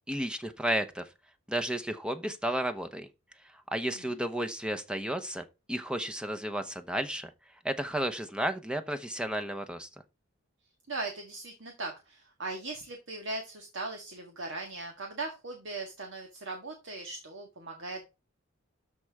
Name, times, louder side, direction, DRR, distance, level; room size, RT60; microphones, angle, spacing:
voice 1, 0.1-1.1 1.5-3.1 3.7-7.3 7.6-9.9, right 1 dB, 5° right, 0.8 m, -32 dB
voice 2, 3.8-4.2 10.9-18.0, right 3 dB, 65° right, 1.8 m, -39 dB
13.0 x 4.4 x 3.6 m
head